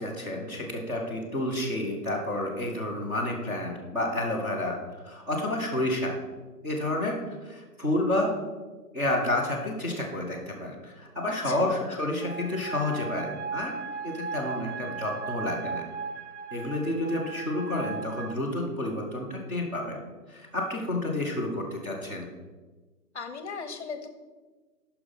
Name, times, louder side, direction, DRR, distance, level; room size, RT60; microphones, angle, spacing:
voice 1, 0.0-4.8 5.0-6.1 6.6-8.4 8.9-13.8 14.0-15.8 16.5-20.0 20.3-22.3, left 1 dB, 10° right, -5 dB, 0.9 m, -30 dB
voice 2, 11.3-11.8 23.1-24.1, left 5 dB, 45° left, 8 dB, 0.9 m, -38 dB
sound 1, 12.2-18.3, right 5 dB, 50° right, 0.7 m, -37 dB
10.0 x 5.8 x 5.4 m, 1.3 s
figure-of-eight pair, 140°, 48 cm